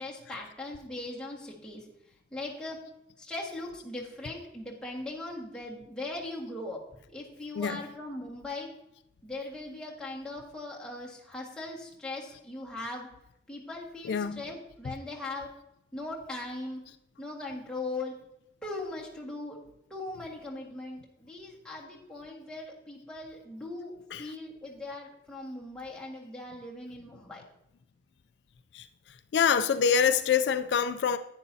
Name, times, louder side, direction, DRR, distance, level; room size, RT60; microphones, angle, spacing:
voice 1, 0.0-1.8 2.3-2.8 3.2-8.7 9.2-13.1 13.5-15.5 15.9-16.8 17.2-18.2 18.6-19.6 19.9-27.4, left 2 dB, 5° left, 1.7 m, -39 dB
voice 2, 14.1-14.4 24.1-24.2 28.7-28.8 29.3-31.2, left 7 dB, 70° left, 0.3 m, -25 dB
10.5 x 9.6 x 2.7 m
head